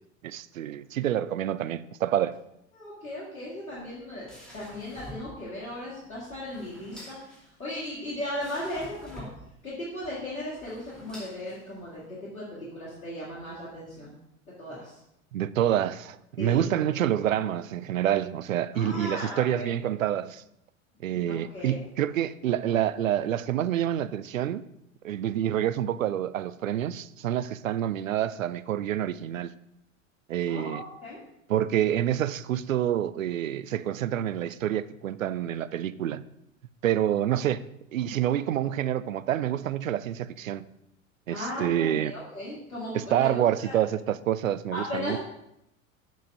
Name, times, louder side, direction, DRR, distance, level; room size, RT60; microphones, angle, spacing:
voice 1, 0.2-2.4 15.3-20.4 21.0-24.6 25.0-29.5 30.3-30.8 31.5-36.2 36.8-37.6 37.9-40.6 41.3-42.1 42.9-45.2, right 11 dB, 75° right, 0.5 m, -27 dB
voice 2, 2.7-4.3 4.5-9.2 9.6-14.1 14.6-14.9 16.4-16.7 18.7-19.7 21.1-21.8 30.5-31.2 41.3-43.7 44.7-45.2, left 1 dB, 80° left, 2.4 m, -37 dB
sound 1, 3.7-12.0, equal, ahead, 2.6 m, -48 dB
7.3 x 5.6 x 6.2 m
figure-of-eight pair, 80°, 40 cm